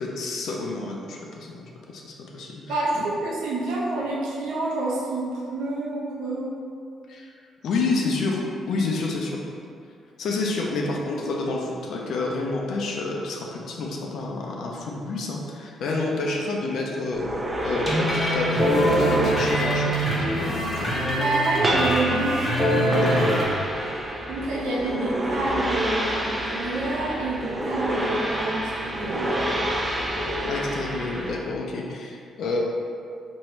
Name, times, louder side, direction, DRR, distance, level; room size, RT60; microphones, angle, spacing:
voice 1, 0.0-1.7 1.9-2.6 3.0-3.1 7.1-7.3 7.6-9.4 10.2-17.2 17.6-19.9 20.2-21.2 23.0-23.3 30.5-32.6, left 3 dB, 70° left, -1 dB, 0.5 m, -29 dB
voice 2, 2.7-6.5 21.1-22.4 24.3-29.3, right 2 dB, 90° right, -5 dB, 0.7 m, -28 dB
sound 1, 17.1-31.3, right 1 dB, 30° right, 0.6 m, -29 dB
sound 2, 17.9-23.4, equal, 15° left, 1.1 m, -23 dB
3.0 x 2.6 x 4.4 m, 2.4 s
cardioid pair, 90°, 0 cm